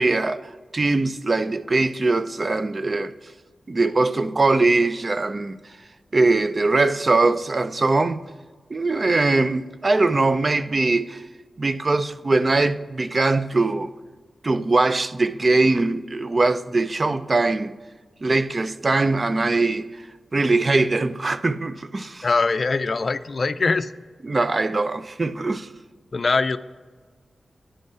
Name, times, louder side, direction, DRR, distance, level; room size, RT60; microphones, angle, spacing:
voice 1, 0.0-3.1 3.7-5.5 6.1-8.2 8.7-11.2 11.6-13.9 14.4-17.7 18.2-19.9 20.3-22.3 24.2-25.7, right 3 dB, 45° right, 0.4 m, -21 dB
voice 2, 22.2-23.9 26.1-26.6, left 4 dB, 55° left, 0.3 m, -22 dB
9.8 x 5.3 x 4.8 m
cardioid pair, 55°, 0 cm